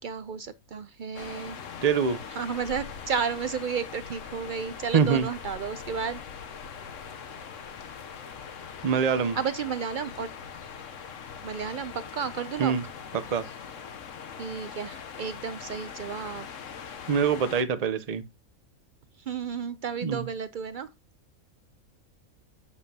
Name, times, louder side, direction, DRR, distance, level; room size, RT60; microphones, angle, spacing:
voice 1, 0.0-1.6 2.3-6.2 9.4-10.3 11.4-12.7 14.4-16.5 19.3-20.9, right 6 dB, 70° right, 0.4 m, -32 dB
sound 1, 1.1-17.6, left 6 dB, 65° left, 1.2 m, -42 dB
voice 2, 1.8-2.2 4.9-5.3 8.8-9.4 12.6-12.8 13.3-13.4 17.1-18.2 20.0-20.2, right 6 dB, 35° right, 0.7 m, -24 dB
8.4 x 7.3 x 2.8 m
omnidirectional pair, 1.5 m